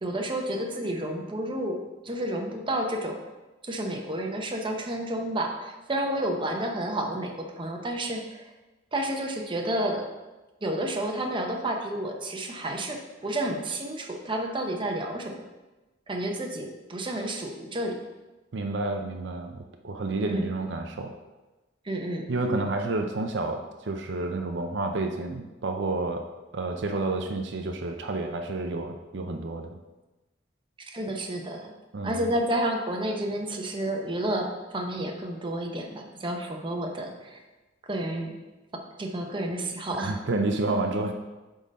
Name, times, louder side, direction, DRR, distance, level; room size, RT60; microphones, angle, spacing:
voice 1, 0.0-3.2 3.6-8.5 8.9-10.1 10.6-15.4 16.1-18.0 20.3-20.5 21.8-22.2 30.9-31.7 32.0-37.4 37.9-38.4 39.0-40.2, right 1 dB, 25° right, 2 dB, 0.9 m, -30 dB
voice 2, 18.5-21.1 22.3-26.3 26.5-29.8 31.9-32.3 40.0-41.1, right 2 dB, 65° right, 4 dB, 0.6 m, -30 dB
8.3 x 3.9 x 5.2 m, 1.1 s
head